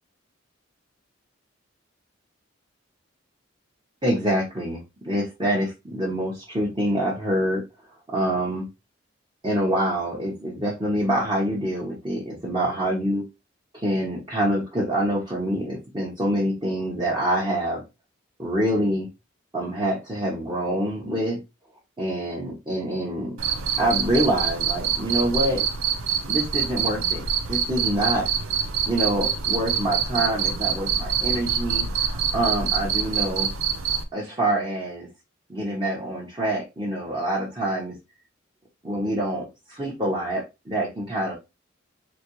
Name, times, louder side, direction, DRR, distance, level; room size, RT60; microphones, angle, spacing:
voice 1, 4.0-7.6 8.1-8.7 9.4-13.2 13.7-17.8 18.4-19.1 19.5-21.4 22.0-23.4 23.8-25.6 26.3-27.2 27.5-28.3 28.9-33.5 34.1-35.1 35.5-37.9 38.8-41.3, right 1 dB, 20° right, -5 dB, 1.0 m, -26 dB
Cricket, 23.4-34.0, right 7 dB, 90° right, 0.6 m, -26 dB
4.1 x 2.9 x 3.1 m, 0.24 s
head